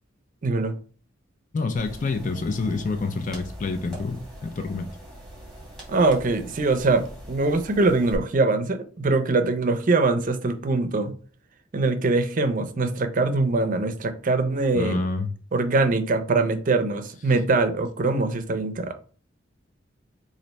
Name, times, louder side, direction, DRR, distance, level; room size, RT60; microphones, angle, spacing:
voice 1, 0.4-0.7 5.9-11.1 11.7-15.0 15.5-18.9, right 3 dB, 45° right, 8 dB, 0.5 m, -23 dB
voice 2, 1.5-4.9 14.7-15.3, left 3 dB, 45° left, 7 dB, 0.4 m, -27 dB
sound 1, 1.8-8.1, equal, ahead, 1.5 m, -42 dB
3.2 x 2.5 x 4.0 m, 0.40 s
head